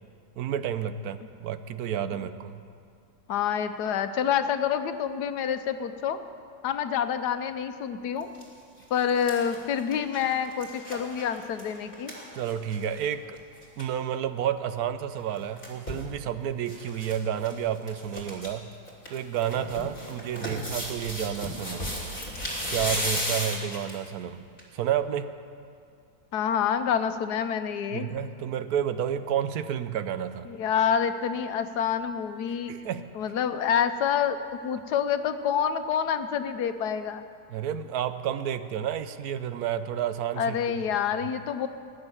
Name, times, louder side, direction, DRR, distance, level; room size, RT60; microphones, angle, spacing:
voice 1, 0.4-2.6 12.3-13.4 13.8-18.7 19.1-21.9 22.7-24.4 24.7-25.3 27.9-30.5 32.7-33.0 37.5-40.6 41.1-41.3, right 9 dB, 75° right, 11 dB, 1.1 m, -30 dB
voice 2, 3.3-6.2 6.6-8.3 8.9-12.1 26.3-28.1 30.5-32.8 33.1-34.4 34.6-37.2 40.4-41.7, left 8 dB, 90° left, 9 dB, 1.4 m, -27 dB
sound 1, 8.2-8.4 8.8-13.0 13.4-13.5 13.6-13.9 15.1-16.1 16.7-17.2 17.4-17.5 17.9-18.5 18.9-24.1 24.6-24.7, equal, 35° left, 3.3 m, -35 dB
19.5 x 6.7 x 9.7 m, 2.3 s
omnidirectional pair, 1.7 m